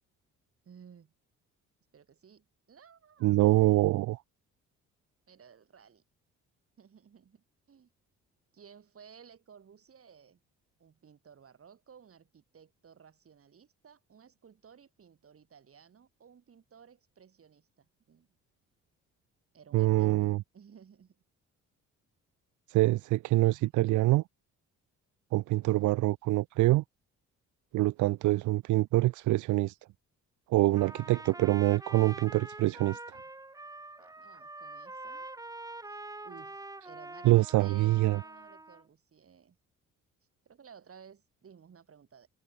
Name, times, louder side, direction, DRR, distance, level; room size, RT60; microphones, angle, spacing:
voice 1, 0.6-1.1 1.9-3.3 5.3-6.0 6.8-7.9 8.5-10.4 10.8-18.3 19.5-21.2 34.0-35.3 35.8-39.6 40.5-42.3, right 7 dB, 50° right, 7.3 m, -56 dB
voice 2, 3.2-4.2 19.7-20.4 22.7-24.2 25.3-26.8 27.7-29.8 30.5-33.2 37.2-38.2, right 18 dB, 75° right, 0.5 m, -25 dB
Trumpet, 30.8-38.8, right 2 dB, 10° right, 1.1 m, -45 dB
cardioid pair, 90°, 30 cm